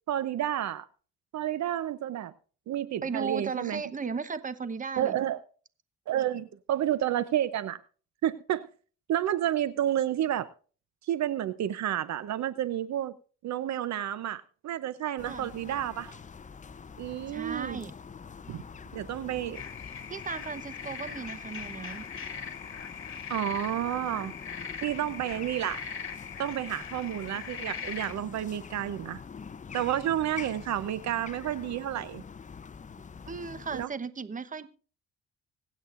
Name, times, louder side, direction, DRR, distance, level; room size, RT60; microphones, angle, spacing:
voice 1, 0.1-0.9 1.3-2.3 2.7-3.8 5.0-5.4 6.1-7.8 8.2-8.7 9.1-10.5 11.0-13.1 13.4-16.2 17.0-17.8 18.5-18.6 18.9-19.6 23.3-24.4 24.8-25.8 26.4-29.2 29.7-32.2 33.7-33.9, right 11 dB, 65° right, 16 dB, 0.7 m, -30 dB
voice 2, 3.0-5.2 15.3-15.5 17.3-17.9 20.1-22.0 33.3-34.7, right 5 dB, 25° right, 14 dB, 1.0 m, -36 dB
sound 1, 15.2-33.9, left 6 dB, 25° left, 0.6 m, -45 dB
sound 2, 19.5-28.1, left 6 dB, 45° left, 2.2 m, -41 dB
25.0 x 8.5 x 2.5 m, 0.39 s
cardioid pair, 90°, 30 cm